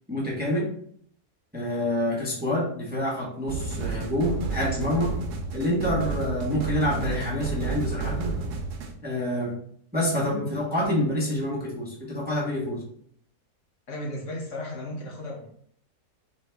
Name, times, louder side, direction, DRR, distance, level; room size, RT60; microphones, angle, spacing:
voice 1, 0.1-0.7 1.5-5.1 5.5-8.4 9.0-9.6 9.9-12.8, left 1 dB, 10° right, -4 dB, 0.8 m, -27 dB
sound 1, 3.5-8.9, right 4 dB, 85° right, 1.2 m, -31 dB
voice 2, 13.9-15.5, left 1 dB, 60° left, -1 dB, 1.1 m, -35 dB
3.9 x 3.2 x 3.4 m, 0.63 s
omnidirectional pair, 1.6 m